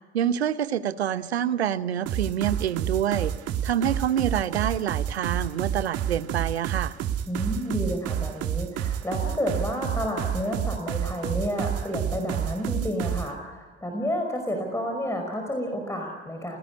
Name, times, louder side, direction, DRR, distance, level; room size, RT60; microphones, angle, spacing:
voice 1, 0.1-3.3 3.6-6.9, right 10 dB, 75° right, 16 dB, 0.9 m, -26 dB
sound 1, 2.1-13.3, right 10 dB, 50° right, 1.7 m, -29 dB
voice 2, 7.3-16.6, equal, 10° left, 2 dB, 5.3 m, -30 dB
28.5 x 19.5 x 9.7 m, 1.3 s
figure-of-eight pair, 55°, 32 cm